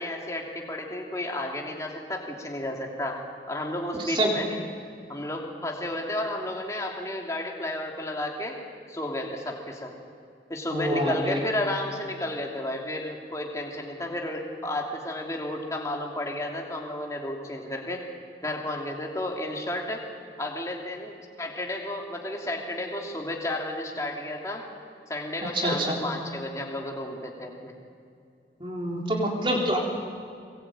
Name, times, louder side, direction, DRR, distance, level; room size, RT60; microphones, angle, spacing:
voice 1, 0.0-3.2 3.5-4.5 5.1-8.5 8.9-9.9 10.5-18.0 18.4-20.0 20.4-24.6 25.1-27.7, left 1 dB, 20° left, 0 dB, 2.8 m, -32 dB
voice 2, 3.9-4.3 10.7-11.4 25.4-26.0 28.6-29.8, right 1 dB, 30° right, 0 dB, 3.7 m, -26 dB
22.5 x 21.0 x 8.9 m, 2.4 s
head